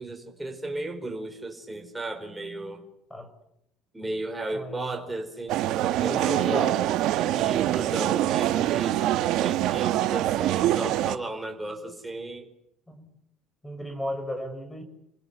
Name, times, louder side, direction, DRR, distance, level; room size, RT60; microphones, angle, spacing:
voice 1, 0.0-2.8 3.9-6.7 7.1-12.5, right 2 dB, 10° right, 4 dB, 4.8 m, -35 dB
voice 2, 4.5-4.9 6.0-6.8 12.9-13.1 13.6-14.8, equal, 10° left, 7 dB, 5.7 m, -34 dB
sound 1, 5.5-11.2, right 13 dB, 70° right, 1.3 m, -24 dB
28.5 x 16.5 x 9.7 m, 0.79 s
supercardioid pair, 85°, 0 cm